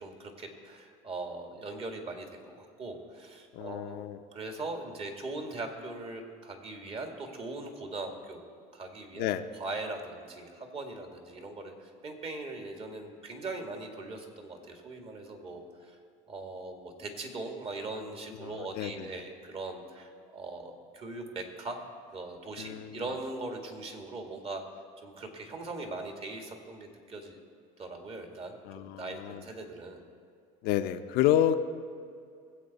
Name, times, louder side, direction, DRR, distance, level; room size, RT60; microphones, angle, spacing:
voice 1, 0.0-4.0 4.3-8.4 8.7-9.3 9.6-16.0 16.3-21.8 22.1-24.6 25.0-27.4 27.8-30.0, right 2 dB, 35° right, 3 dB, 1.9 m, -40 dB
voice 2, 3.5-4.2 9.2-9.4 18.4-19.1 22.6-23.0 28.7-29.4 30.6-31.6, left 11 dB, 65° left, 9 dB, 0.7 m, -29 dB
20.0 x 8.2 x 4.1 m, 2.3 s
supercardioid pair, 115°, 17 cm